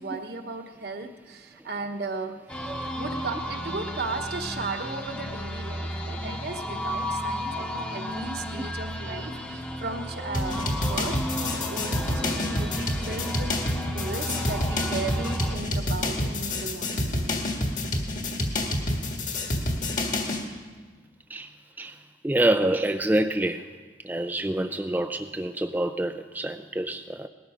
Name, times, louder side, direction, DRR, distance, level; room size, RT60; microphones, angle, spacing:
voice 1, 0.0-2.3 2.9-17.4, right 3 dB, 65° right, 4 dB, 1.2 m, -36 dB
sound 1, 2.5-15.6, equal, 5° left, 0.9 m, -33 dB
sound 2, 10.3-20.4, left 1 dB, 50° left, 1.7 m, -28 dB
voice 2, 22.2-23.7 24.0-27.3, right 1 dB, 10° right, 7 dB, 0.3 m, -26 dB
19.5 x 13.0 x 5.0 m, 1.5 s
head